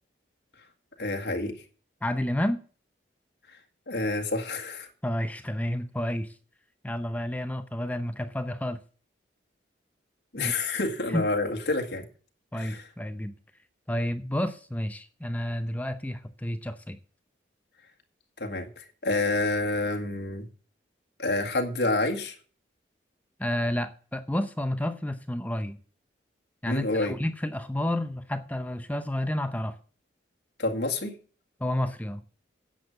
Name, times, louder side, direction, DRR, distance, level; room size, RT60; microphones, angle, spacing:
voice 1, 1.0-1.6 3.9-4.9 10.3-12.1 12.5-12.8 18.4-20.5 21.2-22.4 26.6-27.2 30.6-31.1, left 2 dB, 65° left, 1.9 m, -28 dB
voice 2, 2.0-2.6 5.0-6.3 6.8-8.8 10.4-10.5 11.1-11.3 12.5-13.3 13.9-17.0 23.4-25.8 26.6-29.8 31.6-32.2, left 1 dB, 10° left, 0.7 m, -30 dB
10.0 x 7.0 x 6.5 m
head